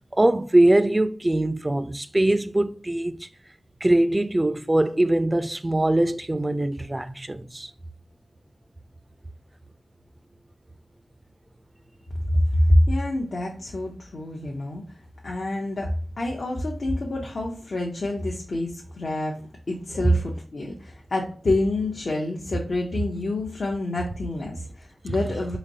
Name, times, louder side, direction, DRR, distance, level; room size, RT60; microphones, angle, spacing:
voice 1, 0.1-3.3 3.8-7.7 20.0-20.1 25.1-25.2, right 1 dB, 25° right, 0.4 m, -22 dB
voice 2, 12.3-14.8 15.2-25.6, left 1 dB, 65° left, 0.7 m, -26 dB
4.0 x 3.0 x 2.6 m
cardioid pair, 50°, 0 cm